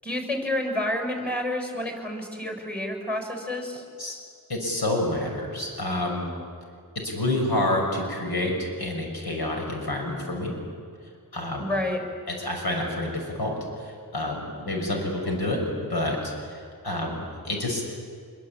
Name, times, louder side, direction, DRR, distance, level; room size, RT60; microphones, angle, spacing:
voice 1, 0.0-3.8 11.6-12.0, left 1 dB, 5° left, 3 dB, 6.9 m, -29 dB
voice 2, 4.5-6.3 7.0-10.6 11.3-11.6 12.4-17.8, left 1 dB, 80° left, 1 dB, 6.6 m, -28 dB
26.0 x 23.0 x 8.9 m, 2.1 s
wide cardioid pair, 80°, 37 cm